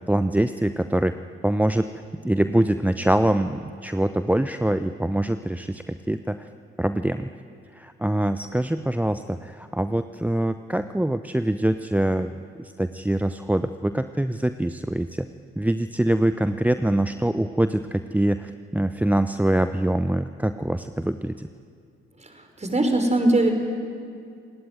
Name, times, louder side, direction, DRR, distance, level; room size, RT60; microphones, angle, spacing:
voice 1, 0.1-1.2 1.4-1.9 2.2-6.5 6.8-7.3 7.7-12.3 12.6-15.3 15.6-21.5, right 1 dB, 5° right, 10 dB, 0.8 m, -24 dB
voice 2, 22.2-23.5, right 2 dB, 20° right, 5 dB, 5.3 m, -21 dB
28.5 x 19.0 x 9.4 m, 2.3 s
figure-of-eight pair, 45°, 30 cm